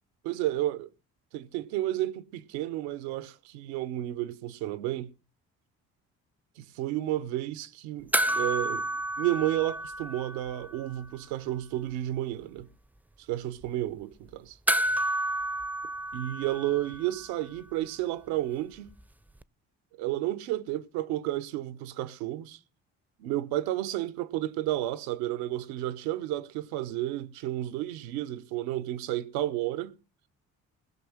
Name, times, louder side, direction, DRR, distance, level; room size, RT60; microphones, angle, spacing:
voice 1, 0.2-0.8 1.3-5.1 6.6-8.9 9.2-12.7 13.3-14.6 16.1-18.9 20.0-22.6 23.2-30.0, right 14 dB, 80° right, 0.9 m, -31 dB
sound 1, 8.1-10.8 11.0-11.1 14.7-17.3 19.4-19.5, right 1 dB, 5° right, 0.6 m, -30 dB
17.5 x 6.1 x 7.2 m
hypercardioid pair, 55°, 36 cm